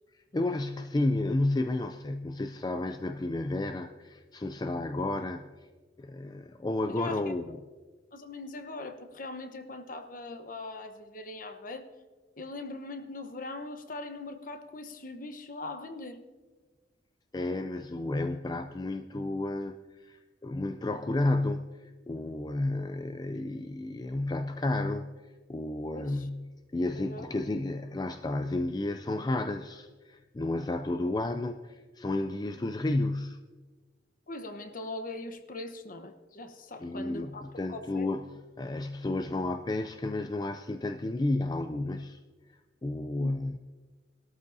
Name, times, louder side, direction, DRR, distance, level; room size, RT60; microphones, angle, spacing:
voice 1, 0.1-5.5 6.0-7.6 17.3-19.8 20.0-25.1 25.5-26.4 26.7-33.4 36.8-42.2 42.8-43.6, left 2 dB, 20° left, 8 dB, 0.4 m, -32 dB
voice 2, 6.9-7.2 8.1-11.9 12.4-16.2 25.9-26.3 26.9-27.3 34.3-38.1 43.1-43.3, left 2 dB, 50° left, 7 dB, 1.0 m, -41 dB
21.0 x 13.0 x 2.7 m, 1.3 s
head